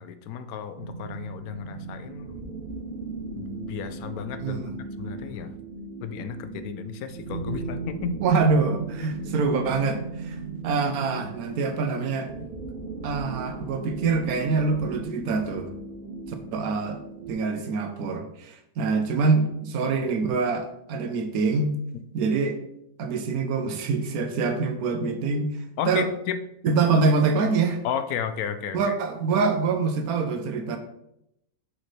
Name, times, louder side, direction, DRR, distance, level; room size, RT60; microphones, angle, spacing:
voice 1, 0.0-2.5 3.3-4.6 5.0-5.5 6.0-8.2 9.2-9.4 25.8-26.4 27.8-28.9, left 8 dB, 80° left, 10 dB, 1.1 m, -33 dB
sound 1, 0.8-17.3, right 3 dB, 45° right, 0.8 m, -37 dB
voice 2, 4.4-4.7 8.2-10.4 10.6-12.5 13.0-15.7 16.5-17.0 17.3-21.8 22.1-22.6 23.0-25.5 25.9-26.1 26.6-27.8 28.7-30.8, right 4 dB, 75° right, 7 dB, 1.2 m, -25 dB
6.4 x 5.2 x 3.2 m, 0.80 s
omnidirectional pair, 1.6 m